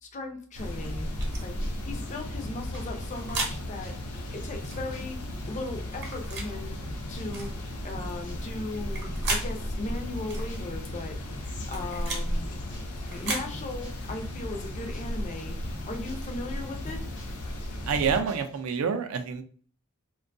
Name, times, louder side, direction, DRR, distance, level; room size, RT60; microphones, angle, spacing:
voice 1, 0.0-1.1 1.4-3.9 4.3-5.2 5.5-6.7 7.1-7.5 7.8-11.2 11.7-12.5 13.1-15.6 15.8-17.0, left 2 dB, 35° left, 4 dB, 0.5 m, -37 dB
sound 1, 0.6-18.2, left 1 dB, 85° left, 0.5 m, -35 dB
sound 2, 1.0-18.8, left 1 dB, 60° left, 1.1 m, -49 dB
sound 3, 1.2-1.4 2.7-3.6 4.6-4.8 5.9-6.5 7.3-7.5 8.7-9.5 10.3-10.5 11.5-12.3 13.1-13.5, right 3 dB, 50° right, 0.8 m, -34 dB
voice 2, 17.9-19.4, right 6 dB, 65° right, 8 dB, 0.4 m, -27 dB
2.6 x 2.2 x 2.5 m, 0.44 s
head